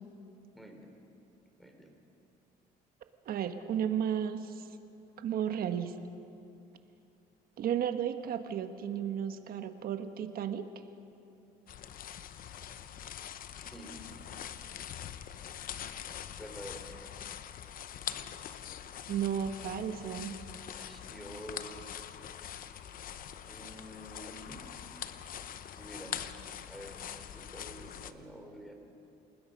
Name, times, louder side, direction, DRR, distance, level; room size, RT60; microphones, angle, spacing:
voice 1, 0.5-1.0 1.6-2.0 13.5-14.0 16.4-16.9 20.7-21.8 23.5-24.7 25.8-26.2 26.6-28.7, equal, ahead, 3 dB, 3.6 m, -48 dB
voice 2, 3.2-4.7 5.2-5.9 7.6-10.6 19.1-20.3, right 9 dB, 60° right, 8 dB, 1.4 m, -33 dB
sound 1, 11.7-28.1, left 10 dB, 55° left, 0.9 m, -43 dB
27.5 x 20.0 x 5.4 m, 2.7 s
cardioid pair, 110°, 17 cm